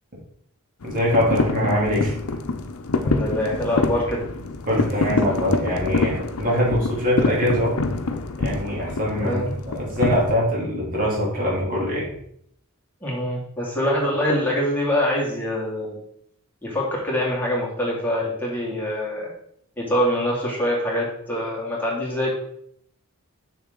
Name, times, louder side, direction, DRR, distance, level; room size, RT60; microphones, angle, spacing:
sound 1, 0.8-10.3, left 3 dB, 80° left, 0.7 m, -26 dB
voice 1, 0.8-2.1 4.7-7.7 8.4-12.1, equal, 40° right, -5 dB, 3.0 m, -23 dB
voice 2, 3.0-4.2 9.2-9.5 13.0-15.9 16.6-19.3 19.8-22.4, left 1 dB, 10° left, -4 dB, 2.4 m, -24 dB
6.7 x 6.6 x 3.9 m, 0.69 s
head